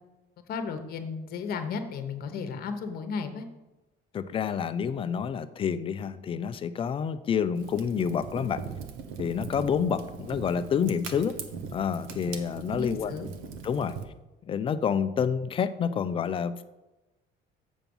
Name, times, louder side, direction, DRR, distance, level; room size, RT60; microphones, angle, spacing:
voice 1, 0.5-3.4 12.7-13.3, left 5 dB, 50° left, 8 dB, 1.0 m, -34 dB
voice 2, 4.1-8.6 9.2-11.4 11.7-13.1 13.6-14.0 14.5-16.6, left 7 dB, 25° left, 12 dB, 0.4 m, -28 dB
Fire, 7.5-14.0, right 6 dB, 85° right, 1.1 m, -40 dB
7.4 x 7.0 x 5.4 m, 1.1 s
cardioid pair, 165°, 20 cm